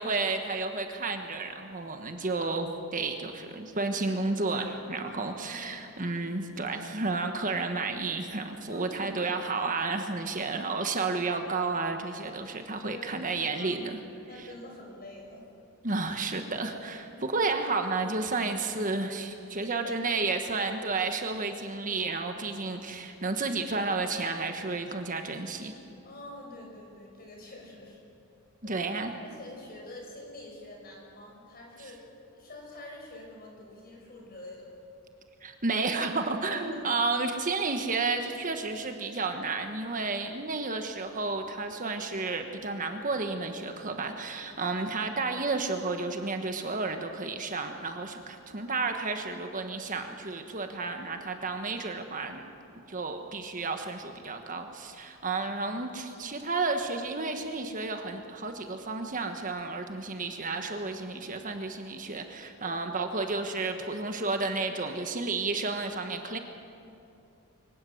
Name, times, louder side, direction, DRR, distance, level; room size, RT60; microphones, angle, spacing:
voice 1, 0.0-14.0 15.8-25.7 28.6-29.1 35.4-52.4 52.9-66.4, right 3 dB, 35° right, 6 dB, 1.3 m, -32 dB
voice 2, 5.0-5.9 8.7-9.2 9.5-9.7 12.8-13.8 14.2-15.4 17.1-17.4 19.6-20.2 26.0-28.0 28.6-28.9 29.2-32.0 32.3-34.7 36.5-36.9 40.7-40.8 48.6-48.7 62.6-62.8, left 1 dB, 45° left, -1 dB, 6.0 m, -46 dB
24.0 x 17.5 x 7.8 m, 2.7 s
head